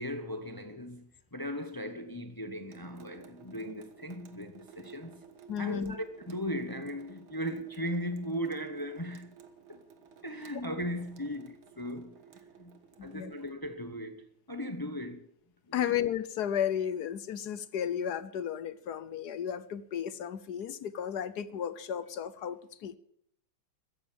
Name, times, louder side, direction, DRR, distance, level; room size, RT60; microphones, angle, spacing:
voice 1, 0.0-5.2 5.6-9.4 9.7-9.8 10.2-12.2 12.6-15.3 15.7-15.8, equal, 25° left, 0.4 m, -38 dB
Water tap faucet / Sink (filling or washing) / Drip, 2.7-13.5, right 6 dB, 70° right, 2.1 m, -55 dB
voice 2, 5.5-5.9 13.0-13.3 15.7-23.0, left 9 dB, 60° left, 1.2 m, -33 dB
14.5 x 10.5 x 8.6 m
omnidirectional pair, 2.4 m